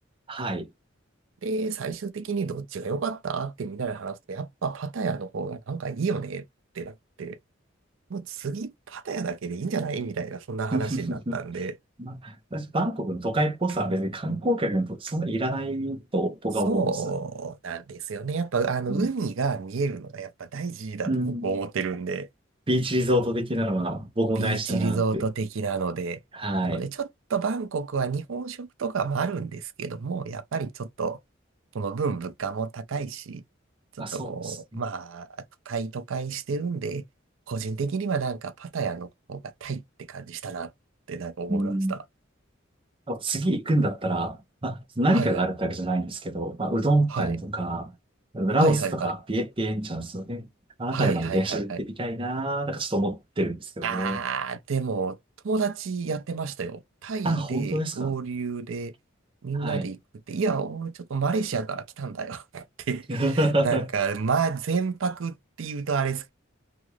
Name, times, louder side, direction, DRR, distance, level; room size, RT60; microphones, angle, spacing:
voice 1, 0.3-0.7 10.7-11.4 12.0-16.9 18.9-19.1 21.1-21.5 22.7-25.2 26.3-26.9 34.0-34.6 41.5-42.0 43.1-47.9 48.3-50.5 50.8-54.2 57.2-58.1 59.6-59.9 63.1-63.9, right 1 dB, 25° right, 0.6 m, -27 dB
voice 2, 1.4-6.4 6.7-7.4 8.1-11.8 16.6-22.3 24.4-26.2 26.7-31.2 31.7-33.4 34.0-35.3 35.7-37.0 37.5-39.8 40.1-40.7 41.1-42.0 45.1-45.5 47.1-47.4 48.6-49.1 50.9-51.8 53.8-55.2 55.4-58.9 59.4-60.0 60.3-66.3, right 5 dB, 80° right, 0.5 m, -30 dB
2.9 x 2.4 x 3.1 m
head